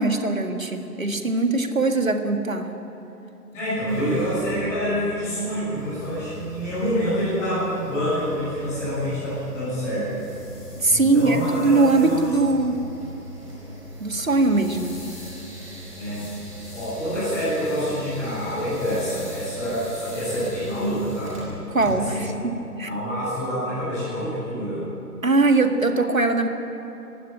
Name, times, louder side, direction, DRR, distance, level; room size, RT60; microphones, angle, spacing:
voice 1, 0.0-2.7 10.8-12.8 14.0-15.0 21.7-22.9 25.2-26.5, right 3 dB, 55° right, 6 dB, 2.0 m, -21 dB
voice 2, 3.5-10.2 10.9-12.2 16.0-16.3 16.7-21.3 22.1-22.2 22.8-24.8, equal, 5° left, -13 dB, 7.0 m, -27 dB
sound 1, 3.9-22.3, equal, 20° right, 5.1 m, -40 dB
sound 2, 9.8-21.9, left 2 dB, 40° left, 7.2 m, -49 dB
22.5 x 16.0 x 8.9 m, 3.0 s
figure-of-eight pair, 165°, 48 cm